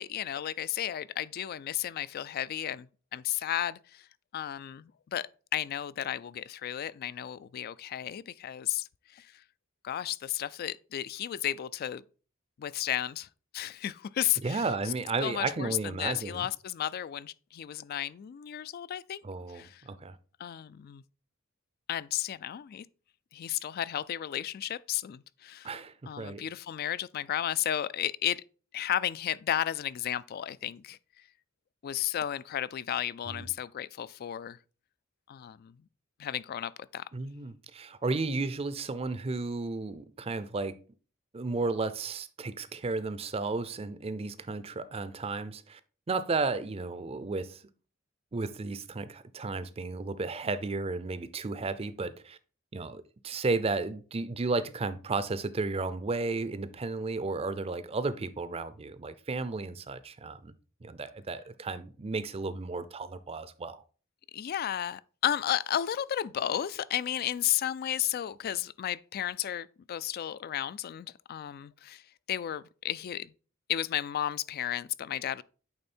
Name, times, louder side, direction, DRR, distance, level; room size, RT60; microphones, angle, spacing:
voice 1, 0.0-4.1 4.3-9.4 9.8-12.0 12.6-13.3 13.5-14.9 15.2-19.2 19.5-19.8 20.4-21.0 21.9-22.9 23.3-25.7 26.1-28.4 28.7-31.0 31.8-34.6 35.3-35.8 36.2-37.1 64.3-73.3 73.7-75.4, left 11 dB, 50° left, 0.3 m, -33 dB
voice 2, 14.4-16.5 19.2-20.2 25.6-26.4 33.3-33.5 37.1-40.8 41.3-45.8 46.1-47.6 48.3-52.4 52.7-60.5 60.8-63.8, right 3 dB, 30° right, 0.5 m, -33 dB
8.8 x 3.5 x 4.2 m
head